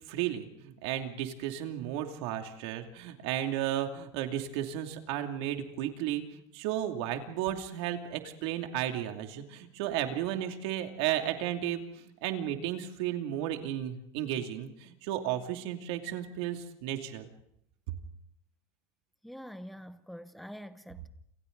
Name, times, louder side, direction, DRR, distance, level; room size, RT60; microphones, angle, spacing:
voice 1, 0.1-17.3, right 11 dB, 70° right, 2.7 m, -34 dB
voice 2, 19.2-21.1, equal, ahead, 0.8 m, -45 dB
29.0 x 27.0 x 4.0 m
cardioid pair, 180°, 15 cm